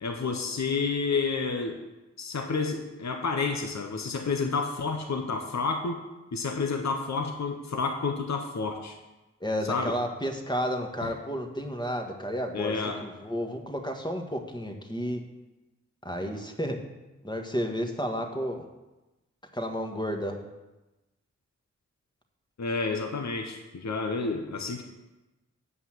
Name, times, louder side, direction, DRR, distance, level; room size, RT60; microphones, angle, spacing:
voice 1, 0.0-1.8 2.2-6.0 6.3-9.0 9.7-9.9 11.0-11.1 12.5-13.0 22.6-24.8, left 4 dB, 70° left, 4 dB, 1.0 m, -30 dB
voice 2, 9.4-15.2 16.0-16.8 17.2-18.7 19.5-20.4, equal, 15° left, 3 dB, 1.6 m, -32 dB
8.3 x 5.6 x 7.4 m, 1.1 s
cardioid pair, 40°, 29 cm